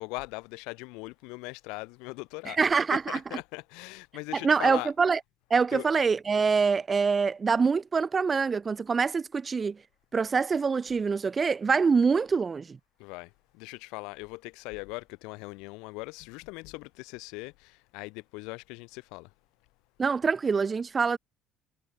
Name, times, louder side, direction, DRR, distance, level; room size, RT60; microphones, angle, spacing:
voice 1, 0.0-2.6 3.1-4.9 5.7-5.9 13.0-19.3, left 27 dB, 80° left, 1.6 m, -40 dB
voice 2, 2.5-3.2 4.3-5.2 5.5-9.8 10.1-12.8 20.0-21.2, right 5 dB, 30° right, 1.1 m, -25 dB
supercardioid pair, 95°, 0 cm